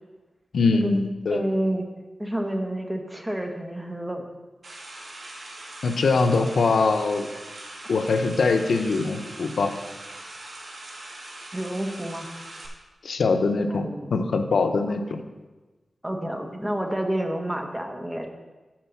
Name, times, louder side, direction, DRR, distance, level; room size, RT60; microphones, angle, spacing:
voice 1, 0.5-1.4 5.8-7.3 7.9-9.7 13.0-13.9 14.1-15.2, left 4 dB, 80° left, 6 dB, 0.7 m, -22 dB
voice 2, 1.3-1.9 2.2-4.2 11.5-12.3 13.7-14.1 16.0-18.3, right 1 dB, 10° right, 3 dB, 1.0 m, -29 dB
sound 1, 4.6-12.7, right 2 dB, 55° right, 1.3 m, -41 dB
7.5 x 4.6 x 7.0 m, 1.2 s
wide cardioid pair, 115°, 0 cm